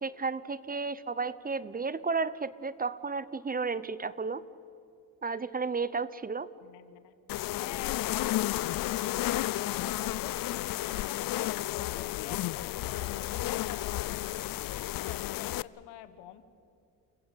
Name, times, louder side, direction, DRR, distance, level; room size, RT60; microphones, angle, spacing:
voice 1, 0.0-4.4 5.2-6.5, right 4 dB, 20° right, 17 dB, 0.8 m, -33 dB
voice 2, 6.6-16.4, left 12 dB, 85° left, 13 dB, 1.4 m, -48 dB
sound 1, 7.3-15.6, left 16 dB, 60° left, 0.6 m, -32 dB
29.5 x 15.0 x 8.5 m, 2.6 s
supercardioid pair, 75°, 39 cm